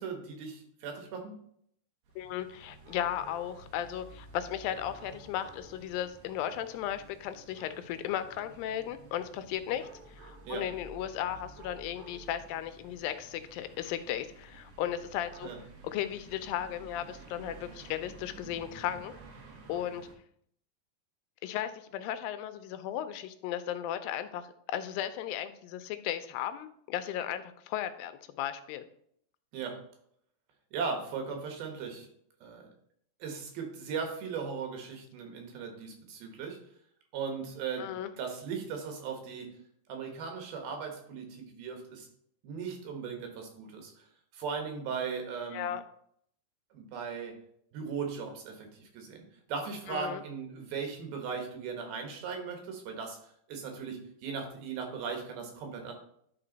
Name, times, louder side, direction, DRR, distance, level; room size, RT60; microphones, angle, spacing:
voice 1, 0.0-1.3 10.5-10.6 15.4-15.6 29.5-29.8 30.7-32.1 32.4-32.7 33.2-36.6 37.1-39.5 39.9-42.1 42.4-44.0 44.3-45.7 46.7-47.4 47.7-55.9, right 5 dB, 90° right, 3 dB, 3.2 m, -38 dB
sound 1, 2.0-20.2, right 4 dB, 75° right, 2.8 m, -52 dB
voice 2, 2.2-15.5 15.8-19.1 19.7-20.1 21.4-28.9 37.8-38.1 45.5-45.8 49.9-50.2, left 11 dB, 85° left, 11 dB, 2.3 m, -36 dB
11.0 x 3.7 x 3.9 m, 0.68 s
omnidirectional pair, 4.1 m